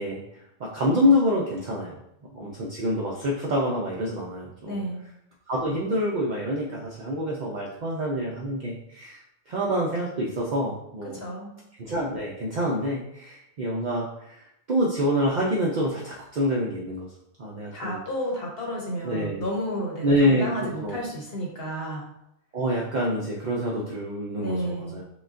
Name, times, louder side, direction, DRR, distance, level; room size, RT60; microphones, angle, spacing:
voice 1, 0.0-1.9 2.3-4.8 5.5-9.2 9.5-11.2 11.8-14.4 14.7-17.1 17.4-18.0 19.0-19.4 20.0-20.5 20.8-21.0 22.5-25.0, equal, 55° right, -4 dB, 0.5 m, -26 dB
voice 2, 4.7-5.0 11.1-11.5 17.7-22.1 24.4-25.0, equal, 50° left, -2 dB, 0.9 m, -31 dB
5.9 x 2.3 x 2.5 m, 0.80 s
omnidirectional pair, 1.4 m